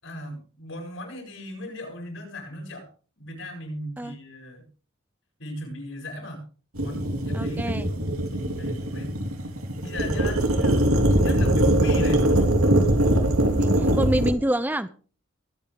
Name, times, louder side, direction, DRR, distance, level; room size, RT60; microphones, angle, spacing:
voice 1, 0.0-2.9 3.2-4.6 5.4-6.4 6.7-9.1 9.8-10.8 11.2-12.2, equal, 65° left, 2 dB, 7.8 m, -37 dB
sound 1, 6.8-14.3, right 1 dB, 85° right, 4.0 m, -22 dB
voice 2, 7.3-7.9 13.4-14.9, right 1 dB, 10° right, 12 dB, 0.6 m, -27 dB
23.5 x 9.2 x 3.6 m, 0.39 s
head